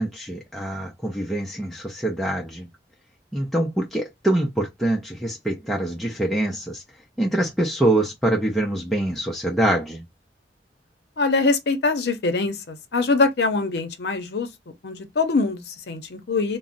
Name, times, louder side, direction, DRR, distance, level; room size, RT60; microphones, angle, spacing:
voice 1, 0.0-2.7 3.3-6.8 7.2-10.0, right 1 dB, ahead, 0.4 m, -24 dB
voice 2, 11.2-14.5 14.8-16.6, left 3 dB, 65° left, 0.6 m, -23 dB
2.4 x 2.0 x 3.7 m
head